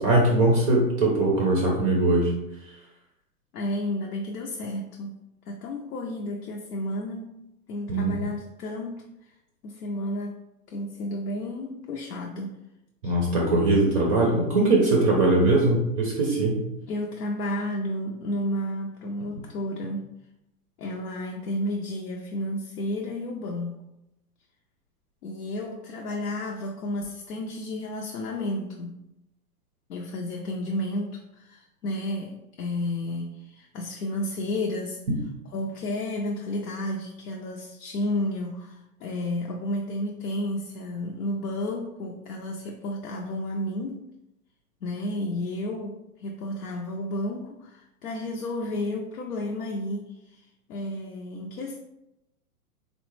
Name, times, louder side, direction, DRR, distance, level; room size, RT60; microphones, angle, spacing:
voice 1, 0.0-2.3 7.9-8.2 13.0-16.6, right 2 dB, 25° right, -2 dB, 0.4 m, -21 dB
voice 2, 3.5-5.2 5.5-7.4 7.7-9.1 9.6-10.4 10.7-12.6 13.0-13.2 16.9-20.1 20.8-23.8 25.2-29.0 29.9-35.0 35.5-44.0 44.8-50.4 50.7-51.8, left 1 dB, 85° left, 0 dB, 0.6 m, -32 dB
3.6 x 2.1 x 3.1 m, 0.88 s
hypercardioid pair, 125°, 45 cm